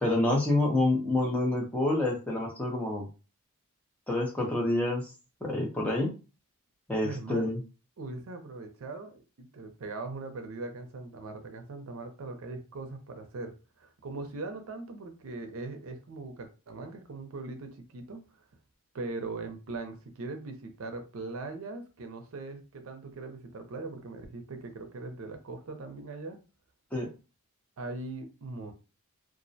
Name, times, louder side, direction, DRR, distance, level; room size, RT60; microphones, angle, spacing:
voice 1, 0.0-3.1 4.1-5.1 5.4-6.1 6.9-7.6 26.9-27.1, left 2 dB, 5° left, -2 dB, 0.5 m, -27 dB
voice 2, 7.0-7.5 8.0-18.4 18.9-26.4 27.8-28.7, right 3 dB, 70° right, 6 dB, 0.5 m, -40 dB
2.4 x 2.0 x 2.6 m, 0.33 s
head